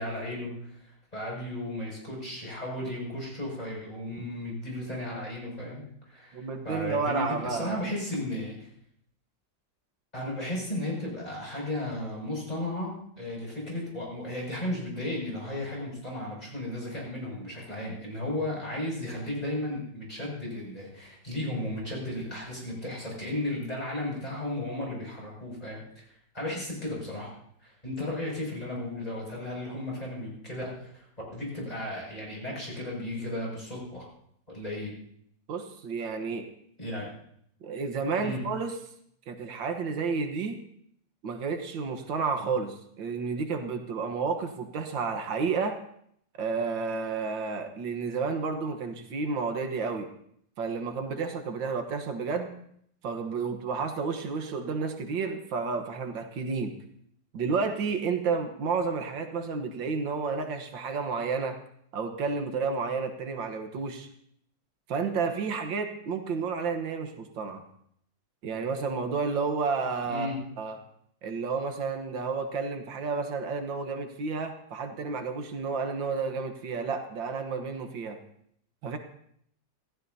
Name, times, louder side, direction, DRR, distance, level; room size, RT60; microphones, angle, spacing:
voice 1, 0.0-8.7 10.1-26.1 26.3-27.3 27.6-31.0 31.3-34.1 34.5-34.9 36.8-37.1 38.2-38.4 70.1-70.4, left 1 dB, 20° left, -3 dB, 6.6 m, -35 dB
voice 2, 6.3-7.9 35.5-36.4 37.6-38.7 39.3-40.6 41.2-45.8 46.4-50.1 50.6-52.5 53.0-56.7 57.3-61.6 61.9-64.1 64.9-67.6 68.4-70.8 71.2-78.2 78.8-79.0, right 5 dB, 85° right, 6 dB, 2.0 m, -31 dB
26.0 x 15.5 x 2.8 m, 0.68 s
omnidirectional pair, 2.0 m